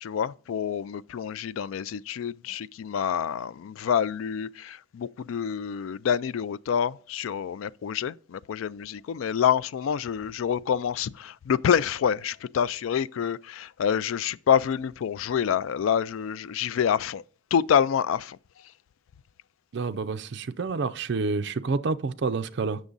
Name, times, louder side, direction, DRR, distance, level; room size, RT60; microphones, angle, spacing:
voice 1, 0.0-17.2 17.5-18.4, left 8 dB, 85° left, 0.3 m, -27 dB
voice 2, 19.7-22.8, right 4 dB, 60° right, 0.4 m, -28 dB
8.2 x 6.2 x 3.8 m
head